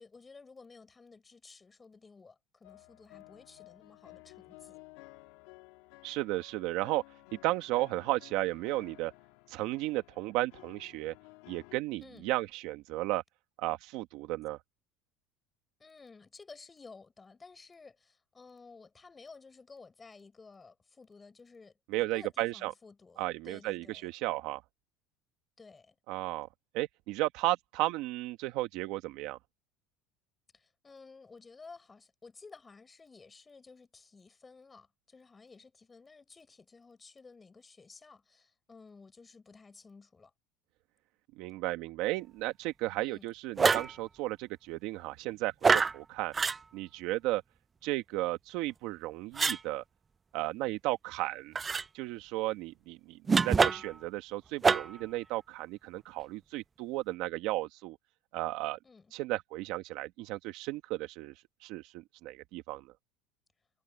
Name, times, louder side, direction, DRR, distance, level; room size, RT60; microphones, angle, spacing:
voice 1, 0.0-4.8 12.0-12.3 15.8-24.1 25.6-26.0 30.5-40.3 43.0-43.3 53.5-53.8 58.8-59.1, left 4 dB, 15° left, 7.8 m, -54 dB
sound 1, 2.6-11.8, left 24 dB, 75° left, 3.9 m, -55 dB
voice 2, 6.0-7.0 7.4-9.1 9.5-11.1 11.5-13.2 13.6-14.6 21.9-22.7 23.2-24.6 26.1-26.5 26.7-29.4 41.4-46.3 46.7-47.4 47.8-49.8 50.3-51.5 51.9-58.0 58.3-58.8 59.1-61.3 61.6-62.9, right 18 dB, 65° right, 1.7 m, -34 dB
sound 2, 43.6-43.9 45.6-45.9 46.3-46.6 49.3-49.6 51.5-51.8 53.3-54.0 54.6-55.0, right 5 dB, 20° right, 0.3 m, -25 dB
cardioid pair, 140°, 0 cm